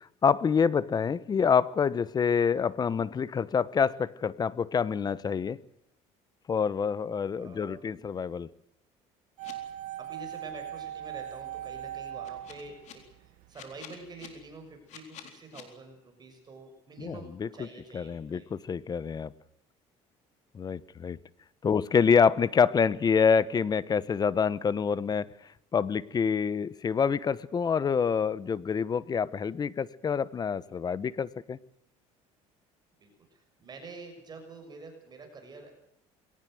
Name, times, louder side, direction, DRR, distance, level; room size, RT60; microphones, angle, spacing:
voice 1, 0.2-5.6 6.5-8.5 17.0-17.7 17.9-19.3 20.5-21.2 21.6-25.3 25.7-31.6, left 6 dB, 30° left, 19 dB, 1.0 m, -27 dB
voice 2, 7.4-7.8 10.0-12.8 13.2-18.4 33.0-35.7, right 3 dB, 30° right, 4 dB, 6.6 m, -47 dB
sound 1, 9.4-9.5 12.2-12.9 13.5-14.3 14.9-15.6, left 11 dB, 65° left, 4.2 m, -47 dB
sound 2, 9.4-13.5 13.7-13.8, right 11 dB, 80° right, 1.5 m, -40 dB
21.5 x 18.5 x 7.8 m, 0.74 s
cardioid pair, 110°, 13 cm